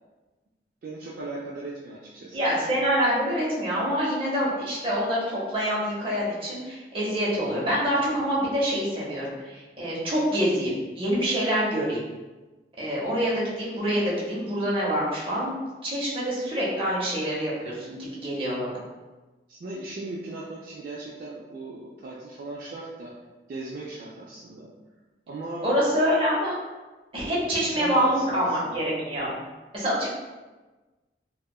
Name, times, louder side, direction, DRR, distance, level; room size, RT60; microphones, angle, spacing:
voice 1, 0.8-2.4 19.5-23.1 23.5-24.7 25.3-25.8 27.6-28.8, right 2 dB, 55° right, -5 dB, 0.3 m, -38 dB
voice 2, 2.3-12.0 12.8-15.6 15.8-18.7 25.6-26.6 27.1-29.3 29.7-30.1, equal, 30° right, -6 dB, 0.8 m, -26 dB
2.7 x 2.3 x 2.3 m, 1.2 s
head